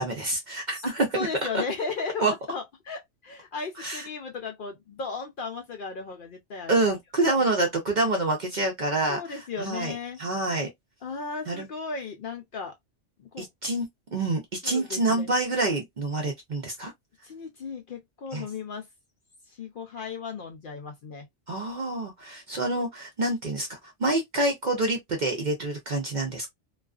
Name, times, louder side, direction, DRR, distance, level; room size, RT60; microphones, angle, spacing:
voice 1, 0.0-1.3 1.5-1.6 2.2-2.3 3.8-4.0 6.7-10.7 11.5-11.7 13.4-13.9 14.1-16.9 18.3-18.5 21.5-26.5, right 2 dB, 50° right, 0.6 m, -27 dB
voice 2, 0.8-6.8 7.3-7.4 9.1-10.2 11.0-12.8 13.2-13.5 14.6-15.3 17.2-18.9 19.5-21.3, left 5 dB, 60° left, 0.5 m, -36 dB
2.4 x 2.3 x 2.3 m
omnidirectional pair, 1.3 m